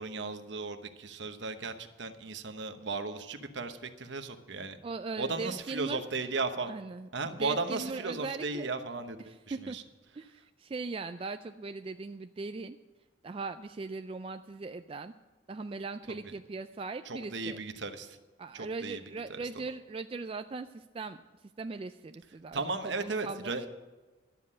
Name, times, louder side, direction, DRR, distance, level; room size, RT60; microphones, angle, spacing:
voice 1, 0.0-4.8 5.2-6.7 7.1-9.8 16.1-16.3 17.0-18.2 18.5-19.4 22.5-23.7, right 3 dB, 65° right, 8 dB, 1.0 m, -36 dB
voice 2, 4.8-6.0 6.7-8.7 9.3-9.8 10.1-12.8 13.2-15.1 15.5-17.6 18.4-22.6 23.0-23.5, right 3 dB, 30° right, 9 dB, 0.3 m, -39 dB
11.5 x 7.6 x 8.4 m, 1.2 s
head